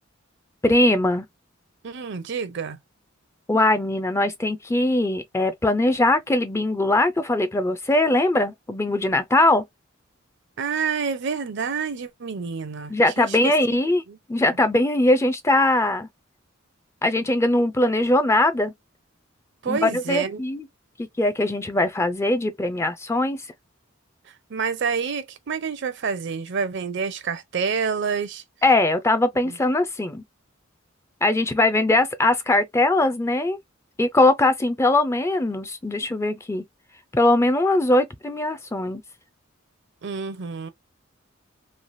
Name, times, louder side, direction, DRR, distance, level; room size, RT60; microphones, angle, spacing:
voice 1, 0.6-1.2 3.5-9.6 12.9-14.0 14.3-16.1 17.0-18.7 19.7-20.7 21.0-23.4 28.6-30.2 31.2-33.6 34.0-36.6 37.1-39.0, left 2 dB, 15° left, 0.3 m, -21 dB
voice 2, 1.8-2.8 10.6-13.8 14.1-14.2 19.6-20.4 24.5-28.4 29.4-29.6 40.0-40.7, right 5 dB, 60° right, 0.5 m, -28 dB
3.2 x 2.2 x 2.5 m
head